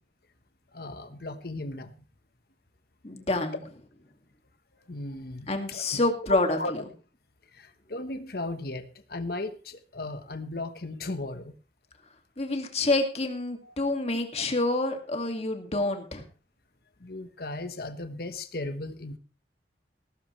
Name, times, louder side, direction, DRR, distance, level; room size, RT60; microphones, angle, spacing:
voice 1, 0.7-1.9 4.9-6.0 6.5-6.7 7.5-11.5 13.6-13.7 17.0-19.2, left 2 dB, 55° left, 9 dB, 1.2 m, -36 dB
voice 2, 3.0-3.6 5.5-6.8 12.4-16.2, left 2 dB, 35° left, 5 dB, 2.2 m, -27 dB
17.0 x 14.5 x 3.3 m, 0.35 s
head